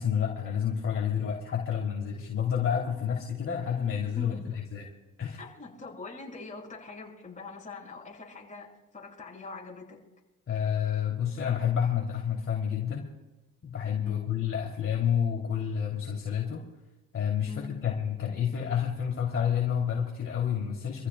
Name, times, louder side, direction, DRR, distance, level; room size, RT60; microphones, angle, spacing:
voice 1, 0.0-4.8 5.2-5.4 10.5-13.1 13.6-16.7 17.1-21.1, left 8 dB, 40° left, -2 dB, 2.8 m, -29 dB
voice 2, 4.1-4.6 5.4-10.0 14.0-14.3 17.5-17.7, left 3 dB, 25° left, -2 dB, 5.9 m, -43 dB
27.5 x 14.5 x 2.2 m, 1.1 s
supercardioid pair, 85°, 33 cm